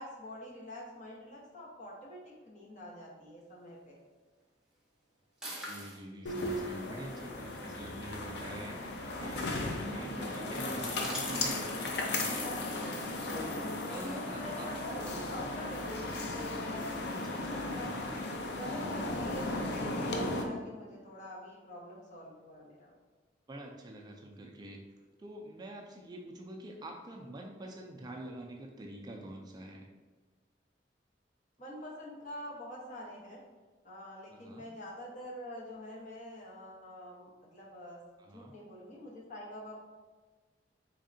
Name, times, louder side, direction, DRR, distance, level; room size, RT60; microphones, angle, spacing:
voice 1, 0.0-4.0 12.1-12.7 13.3-17.9 18.6-22.9 31.6-33.4 33.8-38.0 38.3-39.8, equal, 45° left, -4 dB, 0.9 m, -45 dB
sound 1, 5.4-6.0 7.8-7.9 9.2-9.6 9.9-10.2 10.8-11.6 12.3-12.5, right 1 dB, 5° right, 0.7 m, -43 dB
voice 2, 5.6-13.0 13.2-13.6 13.9-14.7 15.2-15.4 17.1-18.1 23.5-24.8 25.2-29.9 34.3-34.7 38.2-38.6, right 1 dB, 25° right, 1 dB, 0.3 m, -46 dB
sound 2, 6.3-20.4, left 2 dB, 70° left, 0.5 m, -36 dB
3.6 x 3.2 x 2.6 m, 1.3 s
head